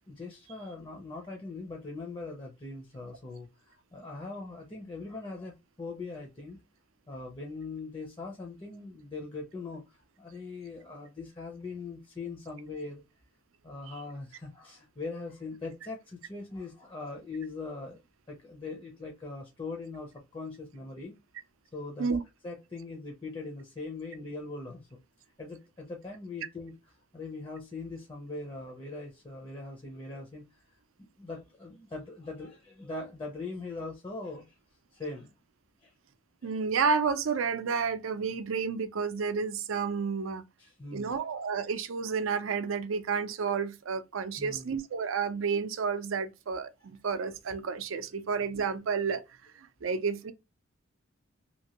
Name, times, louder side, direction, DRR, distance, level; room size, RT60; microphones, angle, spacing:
voice 1, 0.1-6.6 7.1-13.0 13.6-18.0 18.3-21.1 21.7-22.1 22.4-25.0 25.4-26.7 27.1-34.6 34.9-35.3 35.8-35.9 40.6-41.2 44.4-44.8, left 3 dB, 25° left, 0.6 m, -41 dB
voice 2, 36.4-40.4 40.9-49.2 49.6-50.3, right 5 dB, 75° right, 0.5 m, -31 dB
2.9 x 2.6 x 2.8 m
head